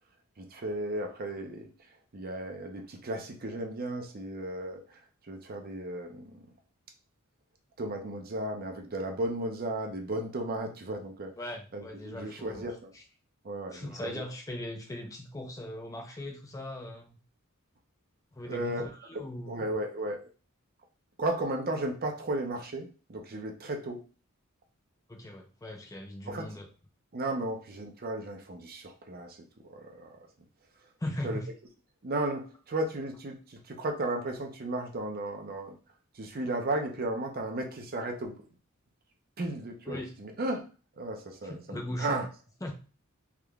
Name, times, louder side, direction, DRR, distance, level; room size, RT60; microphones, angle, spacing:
voice 1, 0.4-1.7 2.1-4.8 5.3-6.4 7.8-11.3 11.7-12.9 13.4-14.2 18.4-18.8 19.5-20.3 21.2-24.0 26.3-26.5 27.1-29.4 29.7-30.2 31.2-31.4 32.0-35.8 36.1-38.4 39.4-40.6 41.0-42.3, right 1 dB, 45° right, 4 dB, 0.6 m, -34 dB
voice 2, 11.4-12.6 12.9-13.0 13.7-17.2 18.3-19.8 25.1-26.7 31.0-31.5 39.9-40.2 41.4-42.2 42.6-42.7, left 1 dB, 15° left, 2 dB, 0.4 m, -39 dB
3.6 x 3.2 x 2.3 m, 0.35 s
head